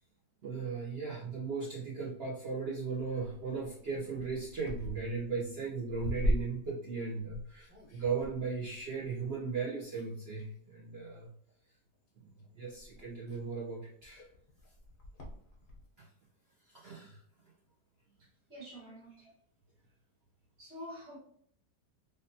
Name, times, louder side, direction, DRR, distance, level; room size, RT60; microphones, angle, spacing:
voice 1, 0.4-11.3 12.2-14.3 16.0-16.1 16.7-17.2, right 4 dB, 60° right, -5 dB, 0.6 m, -37 dB
sound 1, 2.7-9.5 9.9-10.6 11.5-11.8 12.4-12.5 12.7-15.9, equal, 50° left, 0.6 m, -40 dB
voice 2, 18.2-19.3 20.6-21.2, equal, 45° right, -8 dB, 1.7 m, -48 dB
3.5 x 2.6 x 2.7 m, 0.63 s
omnidirectional pair, 1.8 m